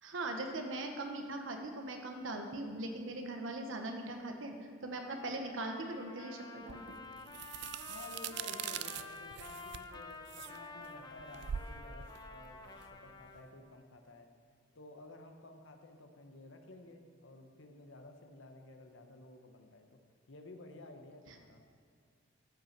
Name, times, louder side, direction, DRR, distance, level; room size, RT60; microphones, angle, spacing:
voice 1, 0.0-7.0 21.3-21.4, right 2 dB, 80° right, 3 dB, 1.0 m, -40 dB
Trumpet, 5.0-13.4, left 4 dB, 20° left, 0.7 m, -50 dB
sound 1, 6.7-13.5, right 9 dB, 60° right, 0.3 m, -44 dB
voice 2, 7.9-14.3 14.7-20.0 20.3-21.6, left 2 dB, 75° left, 5 dB, 1.1 m, -53 dB
13.0 x 5.8 x 5.9 m, 2.2 s
head